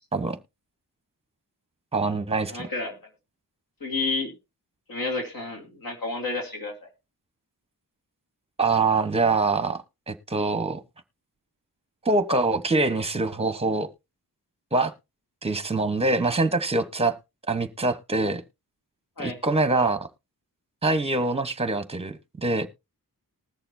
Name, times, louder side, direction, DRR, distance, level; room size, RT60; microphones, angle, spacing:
voice 1, 1.9-2.7 8.6-10.8 12.0-13.9 14.7-14.9 15.4-17.2 17.5-18.4 19.2-20.1 20.8-22.7, right 3 dB, 15° right, 1.0 m, -24 dB
voice 2, 2.5-3.0 3.8-4.3 4.9-6.9 19.2-19.4, left 3 dB, 65° left, 2.7 m, -30 dB
20.0 x 6.8 x 2.6 m
wide cardioid pair, 120°, 37 cm